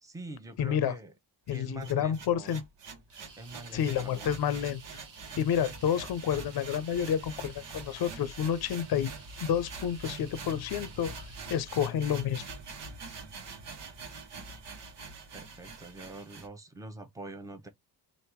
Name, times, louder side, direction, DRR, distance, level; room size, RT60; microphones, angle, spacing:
voice 1, 0.0-1.1 1.5-2.6 3.4-4.3 15.3-17.7, right 2 dB, 10° right, 0.8 m, -45 dB
voice 2, 0.6-0.9 1.5-2.6 3.7-4.8 5.4-9.1 9.4-12.5, left 9 dB, 60° left, 0.6 m, -29 dB
sound 1, 1.5-16.5, right 4 dB, 85° right, 1.2 m, -45 dB
sound 2, 3.1-11.8, right 4 dB, 50° right, 1.4 m, -54 dB
3.4 x 2.6 x 4.5 m
cardioid pair, 110°, 41 cm